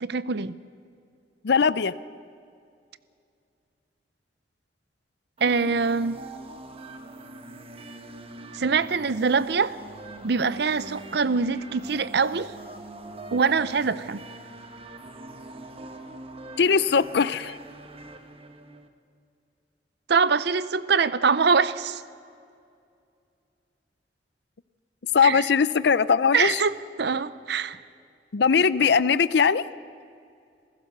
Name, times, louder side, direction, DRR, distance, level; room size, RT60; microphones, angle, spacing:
voice 1, 0.0-0.5 5.4-6.2 8.5-9.8 10.2-12.5 13.3-14.2 20.1-22.0 25.2-25.5 26.3-26.7 27.0-27.8, right 5 dB, 70° right, 16 dB, 0.6 m, -24 dB
voice 2, 1.4-1.9 16.6-17.6 25.1-26.6 28.3-29.6, left 6 dB, 70° left, 16 dB, 0.5 m, -20 dB
sound 1, 5.4-18.9, right 2 dB, 35° right, 1.3 m, -43 dB
27.5 x 15.5 x 6.7 m, 2.4 s
head